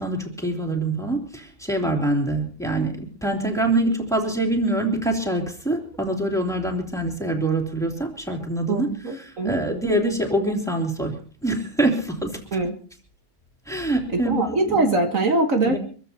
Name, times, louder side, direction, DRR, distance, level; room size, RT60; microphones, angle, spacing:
voice 1, 0.0-12.4 13.7-14.9 15.7-15.8, right 1 dB, ahead, 1 dB, 3.1 m, -25 dB
voice 2, 8.7-9.6 12.5-12.8 14.1-15.8, right 2 dB, 60° right, 4 dB, 1.9 m, -22 dB
25.5 x 15.0 x 2.9 m, 0.41 s
omnidirectional pair, 1.6 m